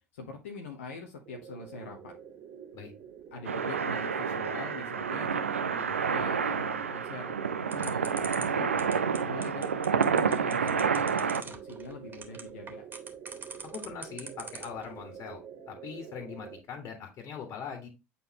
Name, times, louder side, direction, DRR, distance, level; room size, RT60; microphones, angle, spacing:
voice 1, 0.1-2.1 3.3-7.4 7.7-8.8 9.2-12.8, left 4 dB, 75° left, 1 dB, 1.1 m, -43 dB
sound 1, 1.2-16.6, right 8 dB, 55° right, 1.3 m, -47 dB
sound 2, 3.5-11.4, right 6 dB, 85° right, 0.5 m, -29 dB
sound 3, 7.7-14.9, right 4 dB, 30° right, 1.9 m, -42 dB
voice 2, 13.7-15.4 15.7-17.9, left 7 dB, 50° left, 3 dB, 2.0 m, -41 dB
8.3 x 4.2 x 3.0 m, 0.25 s
figure-of-eight pair, 65°, 7 cm